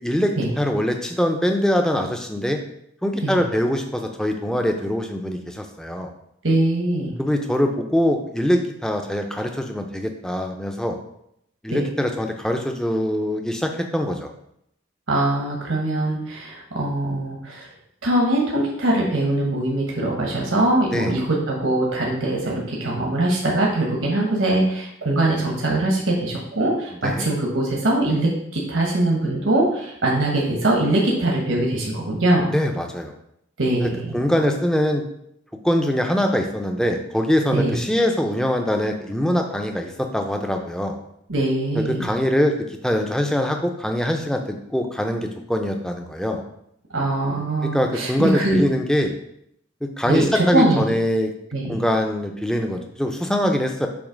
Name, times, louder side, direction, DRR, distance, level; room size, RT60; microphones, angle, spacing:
voice 1, 0.0-2.6 3.0-6.1 7.2-11.0 11.6-14.3 20.9-21.2 27.0-27.3 32.5-33.1 34.1-35.0 35.6-41.0 41.7-42.5 42.8-46.4 47.7-49.1 50.0-51.3 51.7-53.9, equal, 5° left, 4 dB, 0.4 m, -23 dB
voice 2, 6.4-7.1 11.7-11.8 15.1-17.7 18.0-32.5 33.6-34.2 37.5-37.8 41.3-42.1 46.9-48.6 50.1-50.9 51.5-51.8, right 1 dB, 70° right, -1 dB, 1.0 m, -22 dB
7.1 x 2.9 x 5.0 m, 0.75 s
head